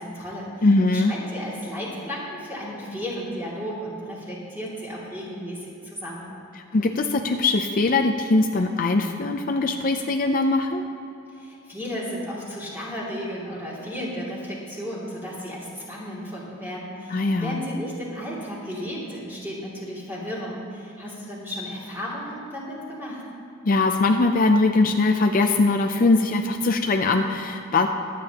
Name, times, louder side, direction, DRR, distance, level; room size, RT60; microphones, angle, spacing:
voice 1, 0.0-6.3 11.3-23.2, equal, 10° right, -7 dB, 2.6 m, -34 dB
voice 2, 0.6-1.1 6.6-10.8 17.1-17.6 23.6-27.9, left 3 dB, 40° left, 4 dB, 0.5 m, -21 dB
23.0 x 8.5 x 2.9 m, 2.7 s
head